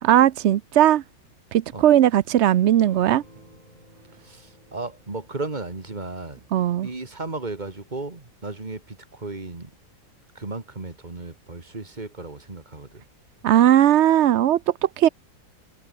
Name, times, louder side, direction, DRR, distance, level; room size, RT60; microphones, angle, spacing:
voice 1, 0.0-1.0 1.5-3.2 6.5-6.9 13.4-15.1, right 11 dB, 75° right, 0.6 m, -18 dB
sound 1, 2.8-7.7, left 1 dB, 25° left, 7.7 m, -53 dB
voice 2, 4.1-6.5 6.8-9.7 10.3-13.0, right 3 dB, 25° right, 2.5 m, -35 dB
omnidirectional pair, 1.9 m